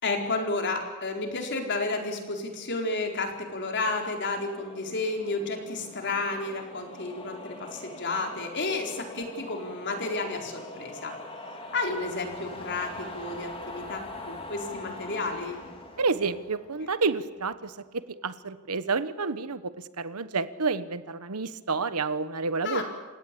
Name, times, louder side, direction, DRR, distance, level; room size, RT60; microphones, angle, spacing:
voice 1, 0.0-11.1 11.7-15.6 22.6-22.8, left 3 dB, 50° left, 3 dB, 4.3 m, -31 dB
sound 1, 3.3-17.5, left 2 dB, 25° left, 3.5 m, -43 dB
voice 2, 16.0-22.8, right 4 dB, 80° right, 13 dB, 1.2 m, -29 dB
28.5 x 17.0 x 8.5 m, 1.2 s
head